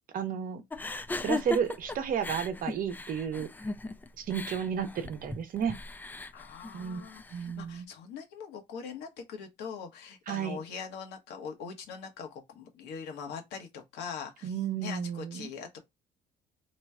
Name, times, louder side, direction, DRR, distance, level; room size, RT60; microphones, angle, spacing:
voice 1, 0.1-0.6 1.2-3.5 4.2-5.8 6.7-7.0 7.3-7.9 10.3-10.6 14.4-15.5, right 8 dB, 55° right, 0.8 m, -32 dB
sound 1, 0.7-7.5, left 2 dB, 10° left, 0.3 m, -38 dB
voice 2, 6.3-15.8, left 6 dB, 85° left, 1.1 m, -42 dB
3.1 x 2.3 x 4.1 m
cardioid pair, 110°, 17 cm